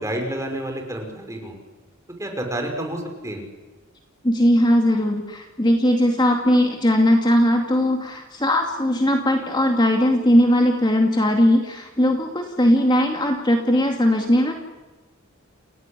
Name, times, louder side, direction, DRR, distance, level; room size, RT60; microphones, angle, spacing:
voice 1, 0.0-1.5 2.2-3.4, right 1 dB, 15° right, 3 dB, 5.5 m, -29 dB
voice 2, 4.2-14.5, equal, 20° left, 3 dB, 2.6 m, -19 dB
29.5 x 17.5 x 9.9 m, 1.2 s
head